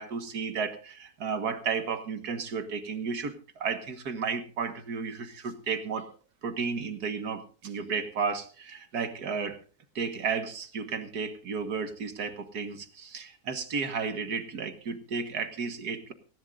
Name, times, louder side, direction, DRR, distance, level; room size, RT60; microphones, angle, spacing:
voice 1, 0.0-6.2 6.4-9.6 10.0-16.1, right 5 dB, 85° right, 9 dB, 2.0 m, -33 dB
19.0 x 17.5 x 2.5 m, 0.37 s
omnidirectional pair, 1.6 m